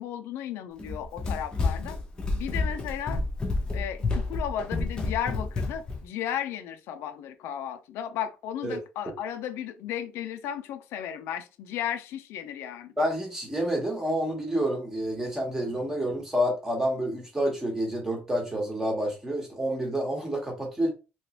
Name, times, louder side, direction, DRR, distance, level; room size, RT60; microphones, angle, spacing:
voice 1, 0.0-2.0 2.4-3.2 3.7-12.9, left 10 dB, 80° left, 0.5 m, -34 dB
Run, 0.8-6.0, left 3 dB, 20° left, 0.7 m, -29 dB
voice 2, 13.0-20.9, equal, 10° right, 1.1 m, -28 dB
3.2 x 3.0 x 2.9 m
cardioid pair, 175°, 4 cm